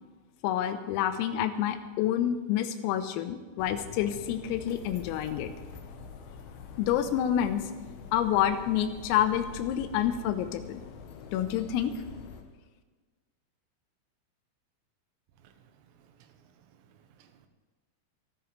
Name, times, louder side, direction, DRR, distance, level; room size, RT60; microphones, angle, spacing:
voice 1, 0.4-5.5 6.8-7.7 8.1-10.8 11.3-11.9, left 10 dB, 90° left, 9 dB, 3.6 m, -28 dB
sound 1, 3.6-12.4, left 6 dB, 70° left, 2.4 m, -45 dB
voice 2, 15.4-17.5, right 8 dB, 85° right, 7 dB, 3.9 m, -61 dB
27.0 x 11.0 x 3.3 m, 1.4 s
omnidirectional pair, 5.9 m